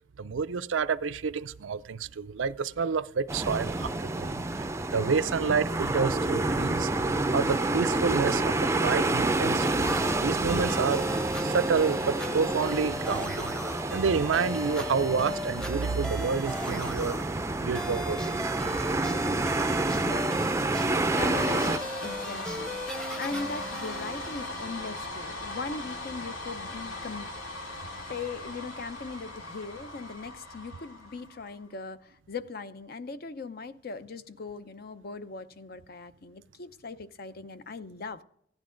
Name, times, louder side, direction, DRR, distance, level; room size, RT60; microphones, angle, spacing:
voice 1, 0.2-6.9 7.3-10.0 10.2-11.1 11.4-13.5 13.9-17.2 17.6-18.5, right 5 dB, 85° right, 0.5 m, -29 dB
sound 1, 3.3-21.8, right 2 dB, 15° right, 0.5 m, -29 dB
sound 2, 9.6-25.1, equal, 5° left, 0.8 m, -38 dB
voice 2, 21.2-27.3 28.1-38.2, left 4 dB, 55° left, 0.6 m, -39 dB
sound 3, 21.3-31.6, left 2 dB, 90° left, 2.8 m, -39 dB
15.5 x 10.5 x 3.8 m
head